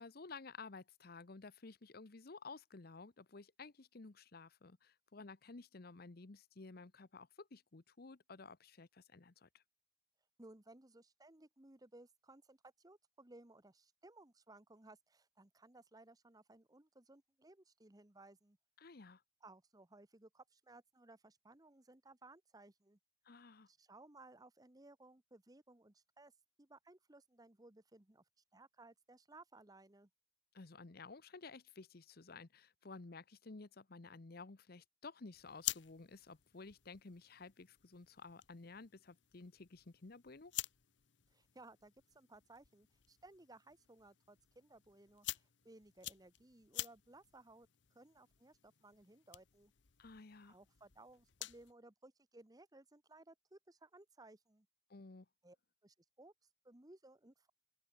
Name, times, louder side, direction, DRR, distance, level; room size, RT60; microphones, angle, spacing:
voice 1, 0.0-9.6 18.8-19.2 23.3-23.7 30.5-40.5 50.0-50.6 54.9-55.3, left 3 dB, 55° left, 0.9 m, -54 dB
voice 2, 10.4-18.6 19.4-23.0 23.7-26.3 26.6-28.2 28.5-30.1 41.3-47.7 47.9-49.7 50.4-54.7 55.4-55.6 55.8-56.3 56.6-57.5, right 2 dB, 20° right, 1.1 m, -61 dB
sound 1, 35.3-51.7, left 14 dB, 70° left, 1.2 m, -50 dB
open air
head